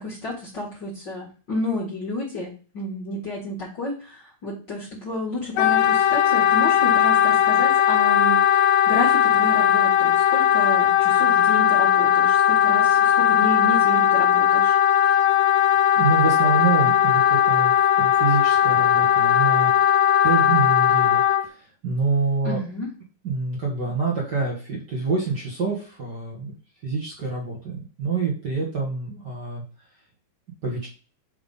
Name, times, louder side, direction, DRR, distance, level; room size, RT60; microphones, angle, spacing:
voice 1, 0.0-8.4 8.9-14.8 22.4-22.9, left 2 dB, 40° left, -5 dB, 1.8 m, -31 dB
Wind instrument woodwind instrument, 5.6-21.4, left 9 dB, 85° left, 2.4 m, -18 dB
voice 2, 15.9-22.6 23.2-26.5 26.8-29.6 30.6-30.9, right 4 dB, 50° right, -3 dB, 1.3 m, -27 dB
5.8 x 3.6 x 5.4 m, 0.38 s
omnidirectional pair, 4.1 m